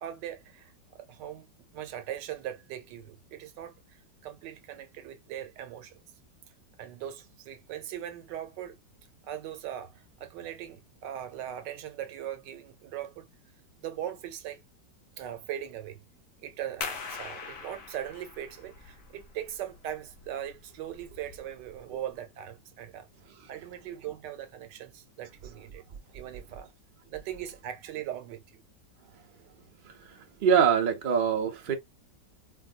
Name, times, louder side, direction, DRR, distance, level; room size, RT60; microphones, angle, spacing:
voice 1, 0.0-1.5 1.7-6.0 6.8-8.8 9.2-13.3 13.8-14.6 15.2-16.0 16.4-23.1 23.5-25.8 26.1-26.7 27.1-28.6, right 11 dB, 75° right, 1.3 m, -40 dB
sound 1, 16.8-22.1, left 5 dB, 60° left, 1.1 m, -43 dB
voice 2, 29.8-31.8, right 7 dB, 60° right, 0.5 m, -25 dB
4.7 x 2.2 x 2.4 m
omnidirectional pair, 2.0 m